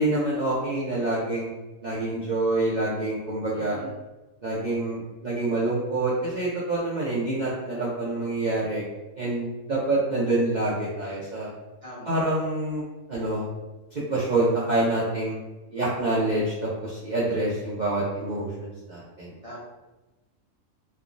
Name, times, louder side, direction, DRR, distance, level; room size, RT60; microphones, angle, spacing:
voice 1, 0.0-1.5 1.8-3.8 4.4-8.8 9.2-11.5 12.1-12.8 13.1-13.5 13.9-15.3 15.7-19.3, right 2 dB, 55° right, -9 dB, 0.5 m, -26 dB
voice 2, 3.5-3.9 11.8-12.2 19.4-19.6, equal, 45° left, -9 dB, 0.4 m, -41 dB
3.2 x 2.1 x 2.5 m, 1.1 s
omnidirectional pair, 1.5 m